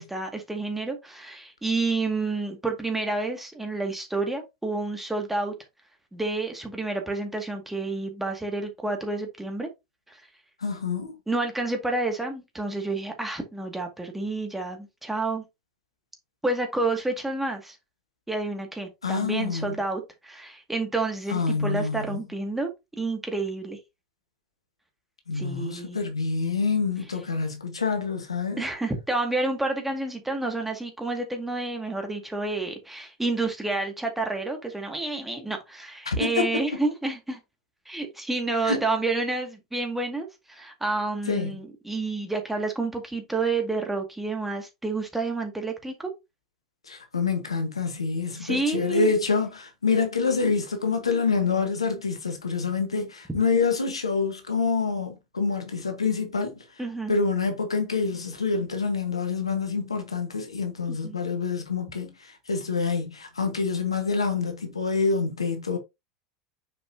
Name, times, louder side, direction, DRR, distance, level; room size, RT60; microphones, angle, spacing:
voice 1, 0.0-5.5 6.1-9.7 10.1-10.2 11.3-15.4 16.4-17.8 18.3-22.7 23.0-23.8 25.3-26.0 28.6-37.4 37.9-46.1 48.3-49.2 56.8-57.1 60.9-61.2, right 3 dB, 5° right, 2.1 m, -29 dB
voice 2, 10.6-11.1 19.0-19.7 21.3-22.2 25.3-28.6 36.1-36.5 38.6-38.8 41.3-41.5 46.9-56.5 57.1-62.1 62.5-65.8, left 4 dB, 85° left, 1.4 m, -26 dB
6.7 x 5.2 x 2.8 m
figure-of-eight pair, 80°, 3 cm